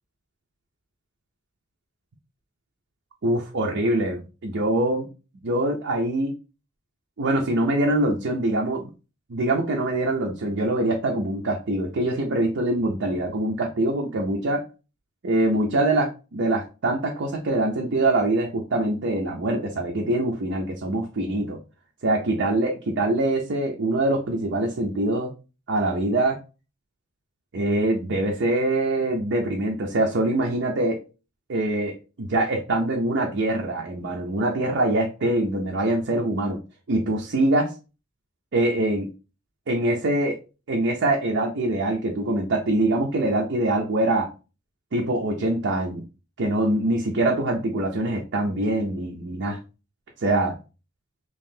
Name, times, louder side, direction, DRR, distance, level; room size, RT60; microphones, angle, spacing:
voice 1, 3.2-5.1 5.4-6.3 7.2-8.9 9.3-14.6 15.2-21.6 22.0-25.3 25.7-26.4 27.5-31.0 31.5-36.6 36.9-37.7 38.5-39.1 39.7-40.4 40.7-44.3 44.9-46.0 46.4-49.6 50.2-50.6, right 1 dB, 60° right, 0 dB, 0.6 m, -24 dB
3.0 x 2.7 x 3.6 m, 0.32 s
head